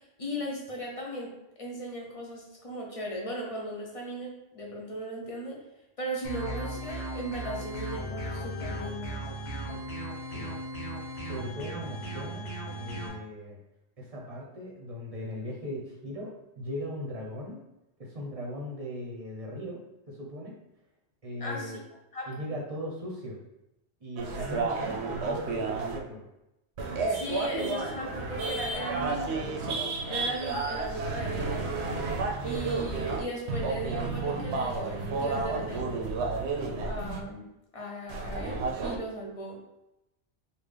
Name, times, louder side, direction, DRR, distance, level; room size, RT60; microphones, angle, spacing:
voice 1, 0.0-5.6 6.0-9.3 21.4-21.8 22.1-22.5 27.1-29.6 30.1-31.7 32.4-36.1 36.8-37.5 37.7-39.6, right 1 dB, 40° left, -2 dB, 0.6 m, -37 dB
sound 1, 6.2-13.1, right 1 dB, 70° left, 1.1 m, -36 dB
voice 2, 11.3-12.5 12.8-13.6 14.0-17.6 18.0-19.8 20.1-20.6 21.2-21.8 22.3-23.4 24.0-26.2, equal, 40° right, -2 dB, 0.7 m, -38 dB
sound 2, 24.2-26.0 26.8-33.2 33.5-37.2 38.1-39.0, right 3 dB, 80° right, 0.8 m, -31 dB
3.6 x 2.4 x 3.3 m, 0.91 s
omnidirectional pair, 1.1 m